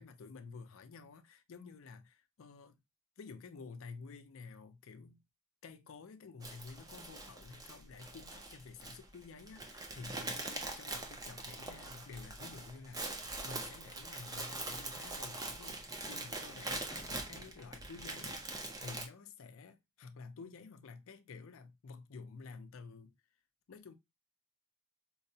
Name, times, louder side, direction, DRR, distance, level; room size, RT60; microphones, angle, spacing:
voice 1, 0.0-2.8 3.2-5.2 5.6-23.2 23.7-23.9, left 4 dB, 65° left, 0.4 m, -51 dB
sound 1, 6.4-19.1, right 2 dB, 15° right, 0.4 m, -43 dB
4.5 x 2.1 x 2.6 m
head